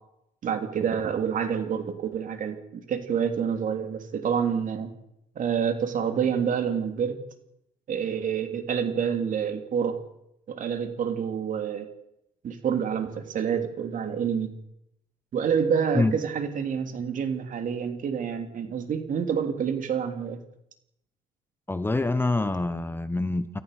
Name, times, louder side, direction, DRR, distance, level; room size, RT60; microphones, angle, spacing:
voice 1, 0.4-4.9 5.3-7.2 7.9-10.0 10.5-11.9 12.4-14.5 15.3-20.4, right 7 dB, 50° right, 7 dB, 3.2 m, -28 dB
voice 2, 21.7-23.6, left 2 dB, 15° left, 12 dB, 1.1 m, -26 dB
28.0 x 14.5 x 6.8 m, 0.83 s
cardioid pair, 110°, 17 cm